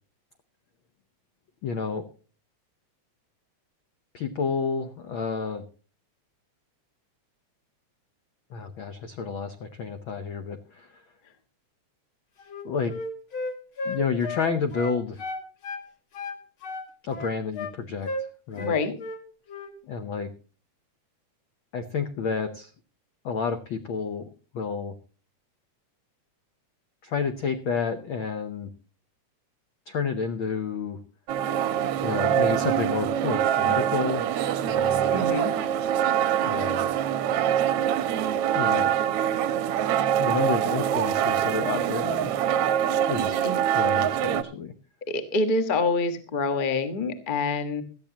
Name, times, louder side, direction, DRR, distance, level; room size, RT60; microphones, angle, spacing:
voice 1, 1.6-2.1 4.1-5.6 8.5-11.0 12.6-13.0 13.8-15.2 17.0-18.1 18.5-18.8 19.8-20.3 21.7-22.7 23.2-24.3 24.5-25.0 27.0-28.7 29.9-31.0 32.0-34.2 34.6-35.2 36.4-36.9 38.5-38.9 40.2-42.3 43.1-43.4 43.7-44.7, left 5 dB, 70° left, 8 dB, 1.2 m, -30 dB
Wind instrument woodwind instrument, 12.4-15.9 16.1-17.8 18.0-18.3 18.6-19.2 19.5-19.7, left 2 dB, 50° left, 2.3 m, -34 dB
voice 2, 18.5-18.9 35.1-35.5 43.4-43.6 45.1-47.8, left 3 dB, 35° left, 9 dB, 0.8 m, -26 dB
sound 1, 31.3-44.4, right 10 dB, 70° right, 1.5 m, -24 dB
17.5 x 13.0 x 2.9 m, 0.36 s
omnidirectional pair, 3.4 m